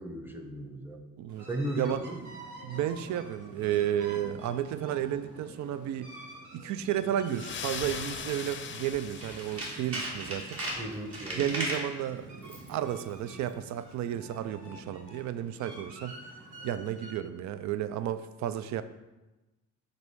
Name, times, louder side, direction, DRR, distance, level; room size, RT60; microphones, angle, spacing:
voice 1, 0.0-1.0 1.5-2.2 10.7-11.4, right 1 dB, 5° right, 4 dB, 0.8 m, -36 dB
sound 1, 1.3-17.1, right 2 dB, 85° right, 1.6 m, -48 dB
voice 2, 2.6-6.1 6.5-10.6 11.4-16.1 16.6-18.8, right 11 dB, 65° right, 13 dB, 0.4 m, -32 dB
sound 2, 7.3-10.3, left 7 dB, 40° left, 0.5 m, -40 dB
Tools, 9.1-11.9 12.4-12.7 13.0-13.1, right 1 dB, 50° right, 1.7 m, -36 dB
5.3 x 4.0 x 4.7 m, 1.1 s
cardioid pair, 90°, 30 cm